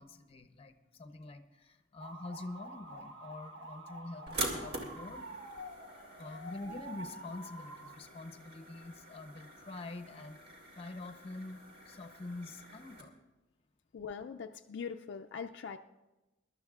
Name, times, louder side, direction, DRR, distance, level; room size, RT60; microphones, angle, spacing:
voice 1, 0.0-5.3 6.2-10.4 10.8-13.2, left 2 dB, 30° left, 7 dB, 0.7 m, -46 dB
sound 1, 2.0-7.9, right 1 dB, 75° right, 1.1 m, -48 dB
sound 2, 4.3-13.0, right 1 dB, 55° right, 2.2 m, -45 dB
voice 2, 13.9-15.8, left 6 dB, 60° left, 5 dB, 0.4 m, -42 dB
23.0 x 12.0 x 2.4 m, 1.1 s
head